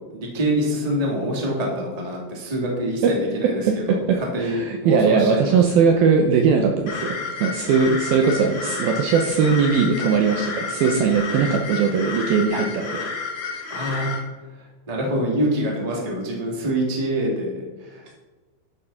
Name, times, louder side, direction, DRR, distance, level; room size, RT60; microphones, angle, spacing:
voice 1, 0.1-3.6 3.9-5.6 13.7-14.1 14.5-18.1, right 1 dB, 15° right, -1 dB, 1.6 m, -26 dB
voice 2, 3.6-13.1, right 5 dB, 75° right, 3 dB, 2.4 m, -20 dB
sound 1, 6.9-14.2, left 4 dB, 70° left, 1.3 m, -31 dB
12.0 x 7.3 x 5.6 m, 1.3 s
omnidirectional pair, 5.0 m